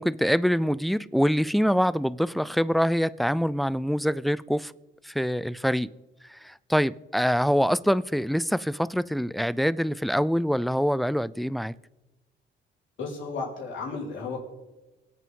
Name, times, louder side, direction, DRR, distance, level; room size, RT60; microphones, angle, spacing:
voice 1, 0.0-4.7 5.0-5.9 6.3-11.7, equal, ahead, 0.3 m, -25 dB
voice 2, 13.0-14.4, left 4 dB, 70° left, 4.7 m, -33 dB
24.5 x 8.4 x 3.8 m
cardioid pair, 90°, 20 cm